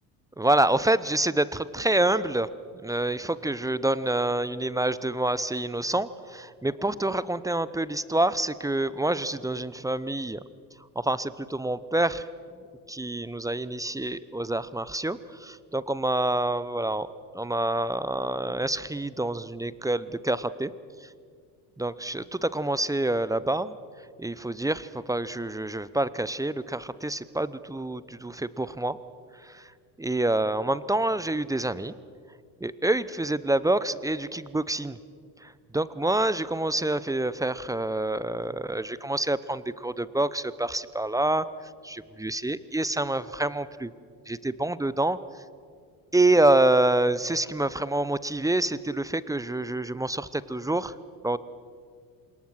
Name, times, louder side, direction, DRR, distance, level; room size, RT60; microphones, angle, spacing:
voice 1, 0.4-2.5 2.8-10.4 11.0-12.2 12.9-17.1 17.3-20.7 21.8-23.8 24.2-29.0 29.4-29.7 30.0-31.9 32.6-35.0 35.4-41.4 41.8-43.9 44.3-45.2 46.1-50.9 51.2-51.4, right 1 dB, 5° right, 17 dB, 0.7 m, -27 dB
26.5 x 21.0 x 6.3 m, 2.1 s
hypercardioid pair, 65°, 50 cm